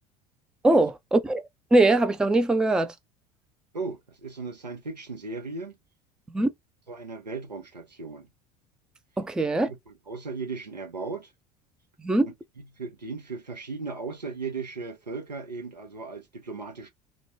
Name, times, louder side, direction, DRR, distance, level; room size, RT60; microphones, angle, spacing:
voice 1, 0.6-1.4 1.7-2.9 6.3-6.5 9.2-9.7 12.0-12.3, right 2 dB, 5° right, 0.4 m, -21 dB
voice 2, 3.7-5.8 6.9-8.3 9.9-11.3 12.3-16.9, right 4 dB, 85° right, 0.7 m, -37 dB
3.1 x 2.1 x 2.7 m
figure-of-eight pair, 70°, 21 cm